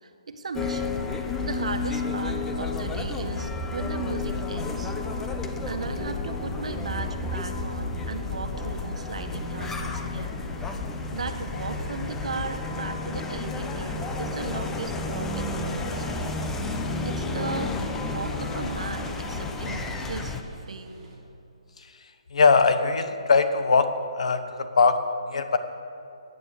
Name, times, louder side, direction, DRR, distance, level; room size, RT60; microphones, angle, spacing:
voice 1, 0.0-4.9 5.7-10.4 11.1-16.7 17.0-20.4 20.7-20.9, right 4 dB, 75° right, 6 dB, 1.5 m, -36 dB
sound 1, 0.5-20.4, left 3 dB, 10° left, 0.6 m, -31 dB
sound 2, 15.7-21.2, right 3 dB, 30° right, 3.9 m, -48 dB
voice 2, 22.3-23.9 24.2-25.0 25.3-25.6, left 4 dB, 70° left, 9 dB, 1.1 m, -20 dB
15.5 x 9.4 x 6.6 m, 2.6 s
hypercardioid pair, 160°, 4 cm